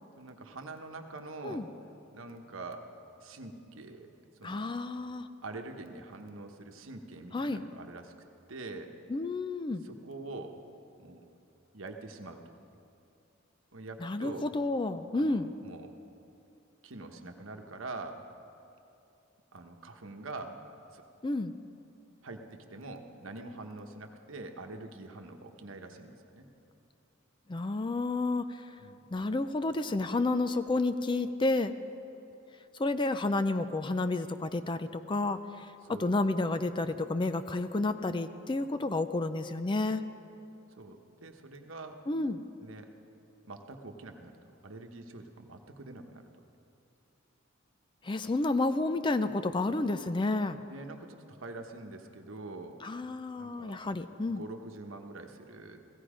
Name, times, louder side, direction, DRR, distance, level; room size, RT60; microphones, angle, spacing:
voice 1, 0.2-1.7 2.1-2.9 3.2-4.1 4.4-4.7 5.4-8.1 8.5-8.9 9.8-10.6 11.0-11.2 11.7-12.6 13.7-14.5 15.1-15.9 16.8-18.2 19.5-20.6 20.9-21.0 22.2-26.5 28.8-29.1 35.8-36.2 40.8-42.0 42.6-42.9 43.4-46.2 50.7-52.8 53.4-53.8 54.3-55.8, right 2 dB, 70° right, 5 dB, 1.1 m, -45 dB
voice 2, 4.4-5.3 7.3-7.6 9.1-9.8 14.0-15.5 21.2-21.5 27.5-28.6 29.1-31.7 32.7-40.0 42.1-42.4 48.0-50.6 52.8-54.4, left 2 dB, 25° left, 10 dB, 0.4 m, -30 dB
16.0 x 16.0 x 5.0 m, 2.7 s
head